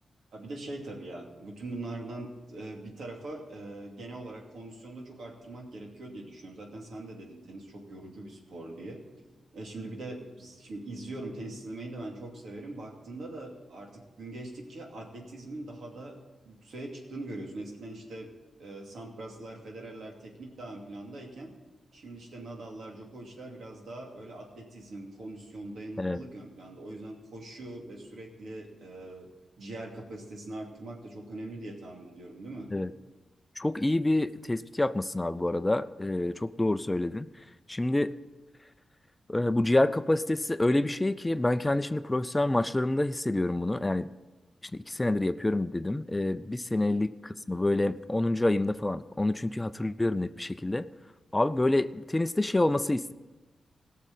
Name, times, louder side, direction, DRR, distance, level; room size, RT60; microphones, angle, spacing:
voice 1, 0.3-9.0 9.5-16.2 16.4-18.3 18.6-21.5 21.9-29.3 29.6-32.7 46.8-47.0, right 2 dB, 75° right, 0 dB, 2.6 m, -42 dB
voice 2, 33.6-37.3 37.7-38.1 39.3-44.1 44.7-50.9 51.3-53.1, left 2 dB, 20° left, 13 dB, 0.5 m, -27 dB
17.0 x 6.6 x 7.5 m, 1.2 s
cardioid pair, 55°, 0 cm